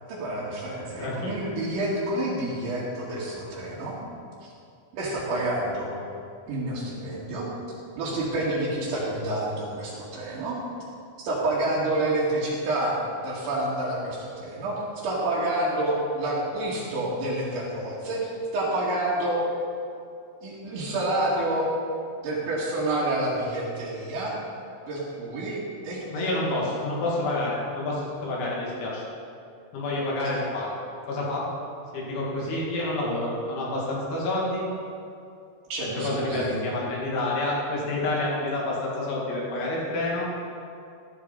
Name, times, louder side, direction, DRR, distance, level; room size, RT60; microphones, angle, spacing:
voice 1, 0.1-4.0 4.9-5.9 6.5-7.5 8.0-10.6 11.2-13.0 13.2-19.4 20.4-21.7 22.2-24.4 24.9-25.6 25.8-26.3 30.2-30.3 35.7-36.6, right 1 dB, 70° right, -10 dB, 4.5 m, -28 dB
voice 2, 1.0-1.3 26.1-29.0 29.7-30.8 31.1-31.5 31.9-34.6 36.0-40.3, left 2 dB, 70° left, -5 dB, 4.9 m, -28 dB
14.5 x 14.0 x 4.1 m, 2.5 s
omnidirectional pair, 5.6 m